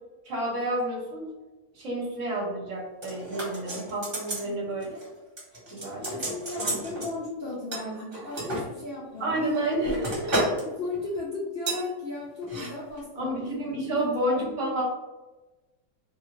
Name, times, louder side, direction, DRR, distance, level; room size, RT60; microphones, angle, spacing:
voice 1, 0.3-1.2 1.7-5.0 5.7-6.2 6.6-6.8 9.2-10.5 13.2-14.8, right 1 dB, 60° right, -3 dB, 1.1 m, -30 dB
sound 1, 3.0-4.5 4.8-5.1 5.4-7.1 7.7-8.6 9.3-10.6 10.9-11.2 11.7-11.9 12.4-12.7 13.0-13.1, right 1 dB, 40° right, 1.2 m, -32 dB
voice 2, 6.0-9.5 10.6-14.5, left 3 dB, 60° left, -5 dB, 0.6 m, -36 dB
2.7 x 2.5 x 2.9 m, 1.1 s
omnidirectional pair, 1.6 m